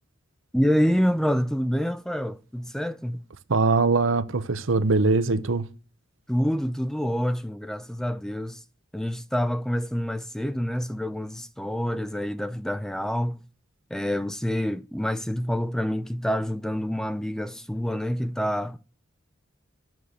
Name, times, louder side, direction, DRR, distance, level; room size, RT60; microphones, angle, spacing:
voice 1, 0.5-3.2 6.3-8.6 8.9-13.4 13.9-18.8, equal, 5° left, 0.4 m, -27 dB
voice 2, 3.5-5.6, right 3 dB, 75° right, 0.9 m, -22 dB
7.7 x 6.7 x 7.8 m
head